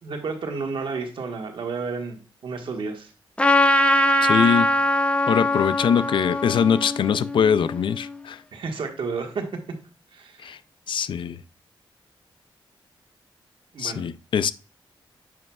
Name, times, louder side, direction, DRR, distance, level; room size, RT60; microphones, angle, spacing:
voice 1, 0.0-3.1 8.5-9.5 10.1-10.5 13.7-14.0, right 4 dB, 70° right, 1.4 m, -31 dB
Trumpet, 3.4-8.0, left 1 dB, 15° left, 0.7 m, -22 dB
voice 2, 4.2-4.7 5.3-8.4 10.4-10.6 10.9-11.4 13.8-14.5, left 7 dB, 65° left, 0.4 m, -22 dB
7.5 x 5.7 x 2.3 m
cardioid pair, 70°, 9 cm